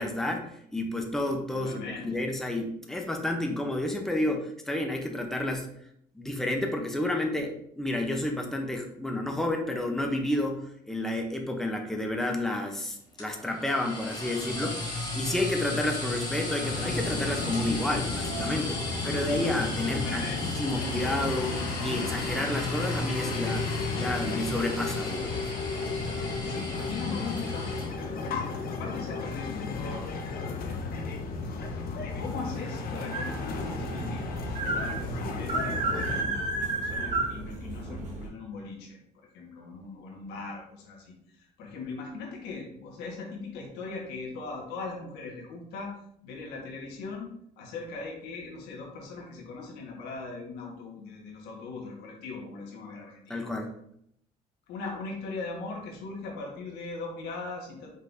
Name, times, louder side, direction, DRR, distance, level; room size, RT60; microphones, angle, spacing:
voice 1, 0.0-5.7 6.2-14.9 15.1-20.2 20.6-23.7 24.0-25.4 53.3-53.7, left 1 dB, ahead, 2 dB, 0.7 m, -30 dB
voice 2, 1.5-2.2 19.9-21.1 26.4-31.0 32.1-45.9 46.2-47.3 47.6-53.5 54.7-57.9, left 4 dB, 85° left, 0 dB, 1.5 m, -40 dB
sound 1, 13.2-27.9, left 2 dB, 25° left, 1.6 m, -35 dB
sound 2, 16.6-36.2, left 4 dB, 60° left, 0.8 m, -34 dB
sound 3, 33.1-38.3, right 3 dB, 45° right, 1.4 m, -32 dB
5.3 x 3.7 x 2.6 m, 0.70 s
cardioid pair, 110°, 17 cm